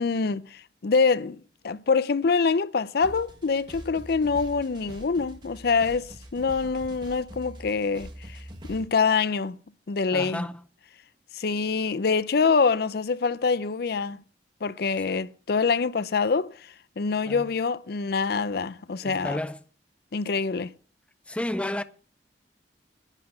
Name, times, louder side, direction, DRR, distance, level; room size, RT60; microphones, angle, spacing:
voice 1, 0.0-8.4 8.7-9.6 9.9-10.4 11.3-14.2 14.6-16.5 17.0-19.4 20.1-20.7, left 5 dB, 60° left, 0.5 m, -25 dB
sound 1, 3.0-8.9, equal, 25° right, 1.5 m, -44 dB
voice 2, 10.1-10.5 17.3-17.5 19.0-19.6 21.3-21.8, left 1 dB, 5° left, 0.4 m, -31 dB
10.5 x 8.0 x 6.6 m
head